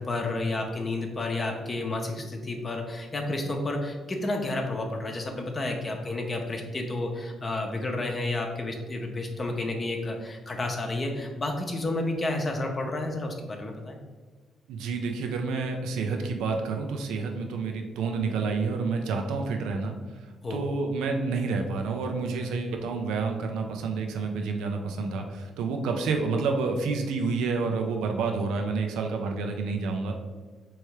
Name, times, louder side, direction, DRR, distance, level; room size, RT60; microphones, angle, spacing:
voice 1, 0.0-14.0 20.4-20.7, left 2 dB, 30° left, 2 dB, 0.7 m, -31 dB
voice 2, 14.7-20.0 20.5-30.1, right 4 dB, 90° right, 3 dB, 0.5 m, -29 dB
3.4 x 3.1 x 4.6 m, 1.3 s
cardioid pair, 90°, 0 cm